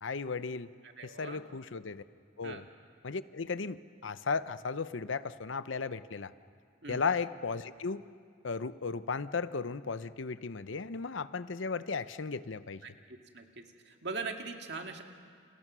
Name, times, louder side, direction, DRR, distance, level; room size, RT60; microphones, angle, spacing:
voice 1, 0.0-0.7 1.0-2.0 2.4-2.6 3.0-6.3 6.9-8.0 8.4-12.8, left 4 dB, 75° left, 14 dB, 0.7 m, -35 dB
voice 2, 0.8-1.5 2.4-2.6 6.8-7.0 12.8-13.5 13.8-15.0, right 4 dB, 55° right, 4 dB, 2.1 m, -41 dB
30.0 x 27.5 x 6.2 m, 2.2 s
head